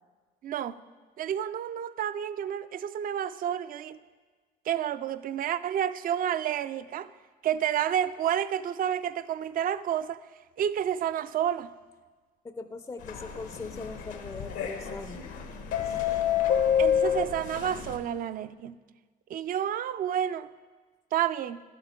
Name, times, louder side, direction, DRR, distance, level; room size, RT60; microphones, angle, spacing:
voice 1, 0.4-0.7 1.2-4.0 4.7-7.1 7.4-10.2 10.6-11.7 16.8-18.8 19.3-20.5 21.1-21.6, right 10 dB, 50° right, 0.4 m, -30 dB
voice 2, 12.4-15.2 15.9-16.2, left 3 dB, 20° left, 0.4 m, -41 dB
sound 1, 13.0-18.0, left 8 dB, 85° left, 1.1 m, -29 dB
11.5 x 9.0 x 3.6 m
supercardioid pair, 70°, 18 cm